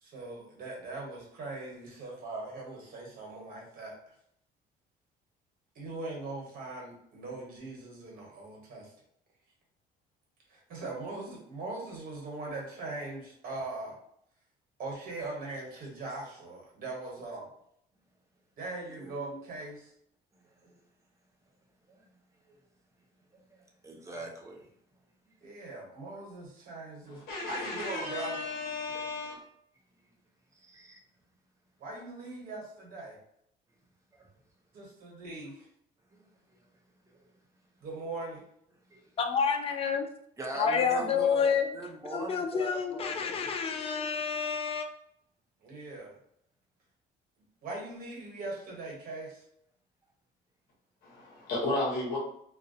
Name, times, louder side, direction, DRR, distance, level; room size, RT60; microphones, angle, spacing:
voice 1, 0.0-3.9 5.7-8.9 10.5-13.9 14.8-17.5 18.6-19.9 20.6-20.7 25.4-28.5 31.8-33.2 34.7-35.7 37.8-38.4 45.6-46.2 47.6-49.4, right 2 dB, 60° right, -1 dB, 1.1 m, -40 dB
voice 2, 23.5-24.7 25.3-25.4 30.5-31.0 34.1-34.3 36.1-36.7 37.1-37.2 38.9-39.1 40.4-43.3, right 1 dB, 20° right, 0 dB, 0.6 m, -42 dB
voice 3, 27.1-29.4 51.0-52.2, left 2 dB, 65° left, -3 dB, 0.9 m, -34 dB
voice 4, 39.2-40.1 40.6-41.6 42.1-44.9, left 6 dB, 35° left, 6 dB, 0.4 m, -28 dB
2.3 x 2.1 x 2.6 m, 0.71 s
cardioid pair, 110°, 17 cm